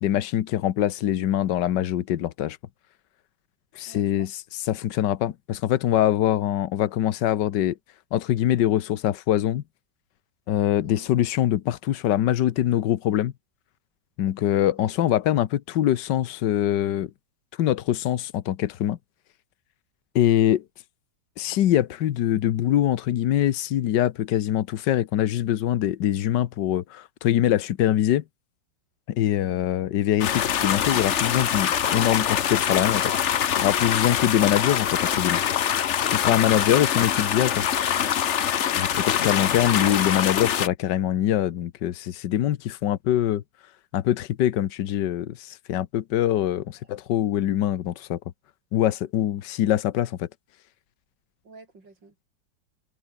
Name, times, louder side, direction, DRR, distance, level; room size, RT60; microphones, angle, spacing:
voice 1, 0.0-2.6 3.7-4.3 4.7-7.8 8.1-9.6 10.5-13.3 14.2-17.1 17.6-19.0 20.1-20.6 21.4-28.2 29.1-33.1 33.6-35.4 36.1-37.6 38.7-43.4 43.9-48.2 48.7-50.3, left 12 dB, 75° left, 1.6 m, -23 dB
voice 2, 3.9-4.3 10.8-11.1 14.8-14.9 29.4-29.6 38.9-39.3 46.8-46.9 51.4-52.3, right 3 dB, 85° right, 5.5 m, -49 dB
sound 1, 30.2-40.7, left 9 dB, 50° left, 1.0 m, -24 dB
omnidirectional pair, 1.9 m